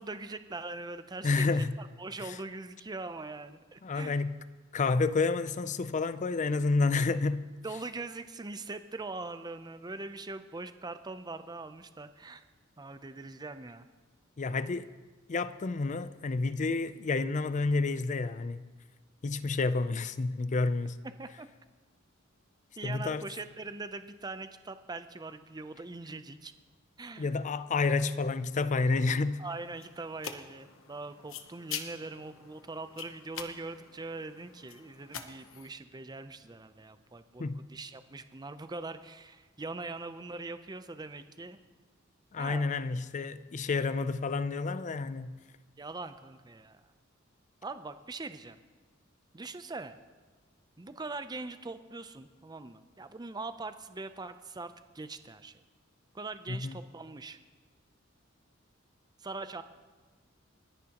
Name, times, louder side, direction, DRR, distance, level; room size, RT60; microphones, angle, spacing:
voice 1, 0.0-4.2 7.6-12.4 12.8-13.9 21.2-21.5 22.8-26.5 27.0-27.3 29.4-41.6 42.4-42.7 45.8-46.8 47.6-48.6 49.3-50.0 50.8-55.6 56.1-57.4 59.2-59.6, right 3 dB, 20° right, 0.6 m, -42 dB
voice 2, 1.2-1.8 2.2-2.4 3.8-4.4 4.7-7.4 14.4-14.9 15.3-18.7 19.2-21.0 22.8-23.2 27.2-29.4 37.4-37.6 42.3-45.4 56.5-56.8, left 3 dB, 40° left, 0.4 m, -29 dB
sound 1, 28.9-35.7, left 8 dB, 85° left, 0.9 m, -45 dB
29.5 x 10.0 x 3.0 m
head